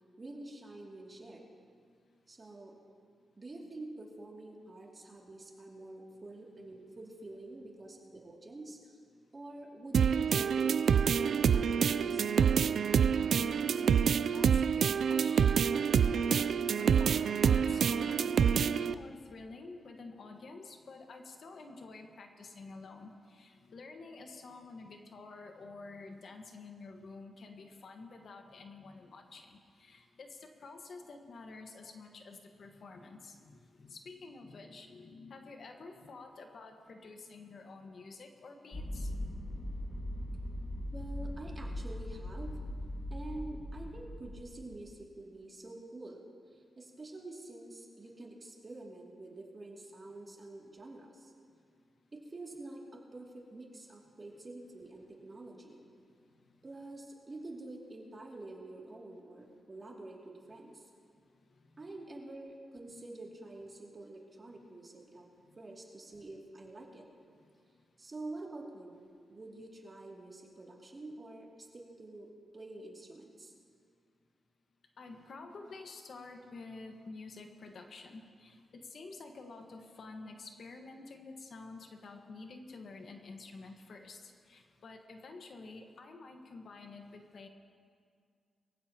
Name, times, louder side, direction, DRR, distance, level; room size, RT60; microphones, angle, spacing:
voice 1, 0.2-1.5 2.3-2.8 3.4-8.8 9.3-12.7 24.3-24.4 31.8-31.9 40.9-42.6 43.1-46.3 46.5-51.3 52.1-55.8 56.6-60.9 61.8-65.3 65.6-67.1 68.0-73.5, right 2 dB, 30° right, -2 dB, 2.5 m, -47 dB
sound 1, 9.9-18.9, right 7 dB, 70° right, 0.3 m, -27 dB
voice 2, 14.3-39.1 61.5-61.6 65.5-65.6 75.0-87.5, left 3 dB, 60° left, 3 dB, 1.4 m, -49 dB
sound 2, 38.7-44.9, left 1 dB, 30° left, 1.7 m, -40 dB
23.0 x 15.0 x 2.9 m, 2.2 s
cardioid pair, 95°, 0 cm